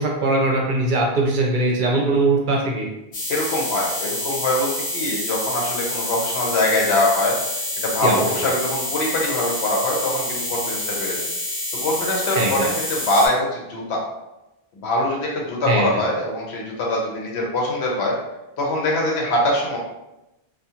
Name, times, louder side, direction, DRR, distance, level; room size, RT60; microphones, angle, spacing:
voice 1, 0.0-2.9 8.0-8.2 12.3-12.7 15.7-15.9, right 2 dB, 60° right, -1 dB, 0.6 m, -20 dB
sound 1, 3.1-13.3, left 1 dB, 65° left, 0.9 m, -28 dB
voice 2, 3.3-7.4 7.8-11.3 11.8-14.0 14.7-18.2 18.6-19.8, left 1 dB, 85° left, -2 dB, 1.0 m, -23 dB
2.4 x 2.4 x 2.8 m, 0.94 s
omnidirectional pair, 1.1 m